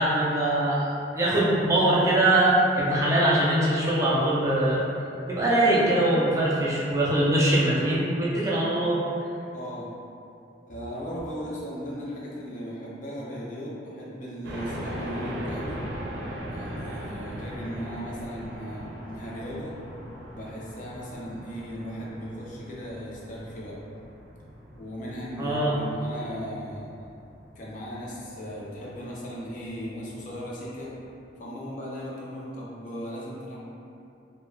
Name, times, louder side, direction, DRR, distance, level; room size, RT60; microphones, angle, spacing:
voice 1, 0.0-4.8 5.3-9.0 25.4-25.8, right 1 dB, 15° right, -7 dB, 0.4 m, -22 dB
voice 2, 9.5-9.9 10.7-15.8 16.5-19.8 20.3-23.8 24.7-26.9 27.5-30.9 31.4-33.6, equal, 45° left, -5 dB, 0.5 m, -37 dB
sound 1, 14.4-31.1, equal, 85° right, 0.5 m, -40 dB
2.2 x 2.1 x 3.1 m, 2.6 s
head